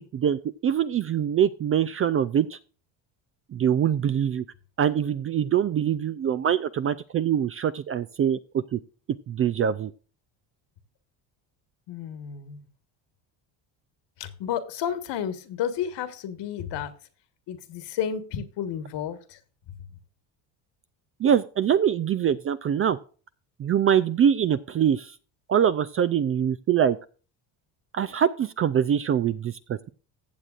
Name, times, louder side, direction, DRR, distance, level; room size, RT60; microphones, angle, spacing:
voice 1, 0.1-2.6 3.5-4.4 4.8-8.8 9.3-9.9 21.2-23.0 23.6-25.1 25.5-27.0 27.9-29.8, right 9 dB, 30° right, 15 dB, 0.4 m, -24 dB
voice 2, 11.9-12.6 14.2-16.9 17.5-19.2, left 9 dB, 60° left, 11 dB, 1.5 m, -31 dB
15.0 x 7.5 x 2.4 m, 0.37 s
supercardioid pair, 95°, 46 cm